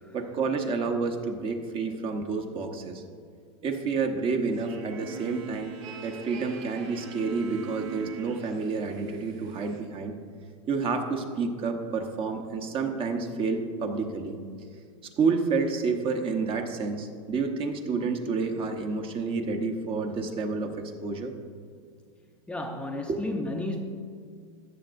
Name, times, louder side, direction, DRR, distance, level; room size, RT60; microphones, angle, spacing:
voice 1, 0.1-3.0 3.6-5.7 6.0-10.1 10.7-14.4 15.2-20.7 21.0-21.3, right 4 dB, 35° right, 5 dB, 1.0 m, -29 dB
sound 1, 4.5-9.8, right 7 dB, 65° right, 1.3 m, -42 dB
voice 2, 22.5-23.8, left 1 dB, 5° left, 1 dB, 0.7 m, -33 dB
13.5 x 9.0 x 2.6 m, 2.1 s
supercardioid pair, 125°, 16 cm